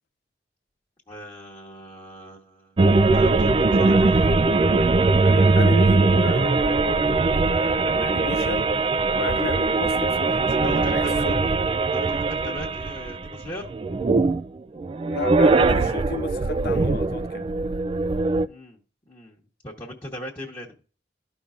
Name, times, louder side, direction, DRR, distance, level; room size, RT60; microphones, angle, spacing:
voice 1, 1.1-4.4 10.6-11.4 11.9-13.7 18.4-18.8 19.1-20.8, equal, 25° left, 1.2 m, -39 dB
sound 1, 2.8-14.5 14.8-18.5, right 3 dB, 30° right, 0.3 m, -21 dB
voice 2, 5.2-8.7 9.1-11.4 15.1-17.5, left 3 dB, 60° left, 0.4 m, -33 dB
13.5 x 5.4 x 2.4 m
head